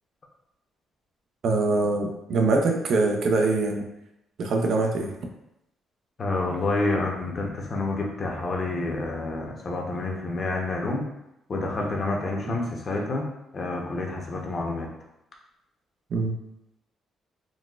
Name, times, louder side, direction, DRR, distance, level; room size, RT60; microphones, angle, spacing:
voice 1, 1.4-3.8 4.4-5.1 12.5-12.6 16.1-16.3, right 3 dB, 65° right, 3 dB, 0.5 m, -23 dB
voice 2, 6.2-11.0 11.5-13.3 13.5-14.9, left 2 dB, 40° left, 0 dB, 0.7 m, -28 dB
3.9 x 2.2 x 2.3 m, 0.86 s
cardioid pair, 90°, 0 cm